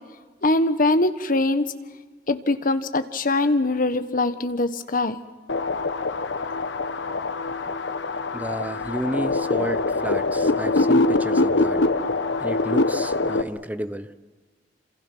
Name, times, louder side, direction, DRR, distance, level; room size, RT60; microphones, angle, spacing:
voice 1, 0.4-1.7 2.3-5.2, left 2 dB, 50° left, 11 dB, 1.3 m, -22 dB
sound 1, 5.5-13.4, left 2 dB, 75° left, 1.1 m, -23 dB
voice 2, 8.3-11.8 12.4-14.1, right 1 dB, 10° right, 13 dB, 0.9 m, -31 dB
28.0 x 26.5 x 6.1 m, 1.4 s
head